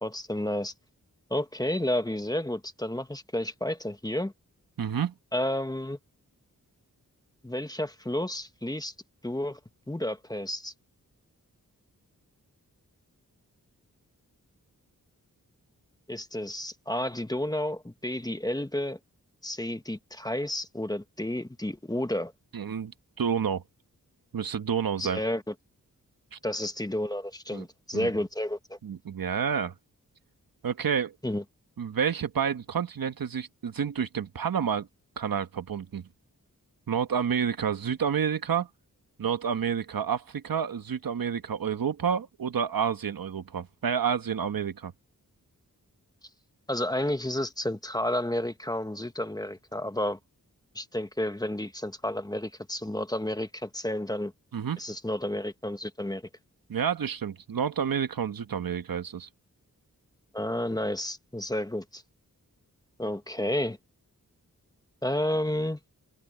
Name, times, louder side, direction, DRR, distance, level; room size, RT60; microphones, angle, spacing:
voice 1, 0.0-0.7 1.3-4.3 5.3-6.0 7.4-8.9 9.2-9.6 9.9-10.7 16.1-19.0 19.4-22.3 25.0-25.4 26.4-28.8 31.2-31.4 46.7-50.2 50.7-54.3 54.8-56.2 60.3-62.0 63.0-63.8 65.0-65.8, left 1 dB, 10° left, 1.2 m, -31 dB
voice 2, 4.8-5.1 22.5-22.9 23.2-23.6 24.3-25.2 26.3-26.4 27.5-27.6 27.9-28.1 28.8-29.7 30.6-31.1 31.8-34.9 35.2-36.1 36.9-38.7 39.2-44.9 54.5-54.8 56.7-59.3, right 7 dB, 85° right, 1.3 m, -29 dB
wide cardioid pair, 85°, 34 cm